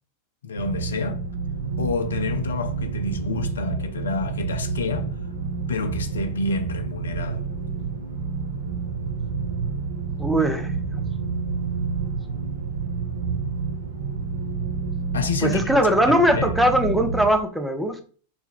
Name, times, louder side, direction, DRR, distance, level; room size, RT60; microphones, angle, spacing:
voice 1, 0.4-1.2 1.8-5.1 5.7-7.5 15.1-15.6 16.3-16.5, left 4 dB, 65° left, 0.4 m, -28 dB
sound 1, 0.6-17.3, right 5 dB, 65° right, 0.4 m, -29 dB
voice 2, 10.2-11.0 15.4-18.0, equal, ahead, 0.4 m, -21 dB
2.6 x 2.2 x 3.5 m
figure-of-eight pair, 90°, 0 cm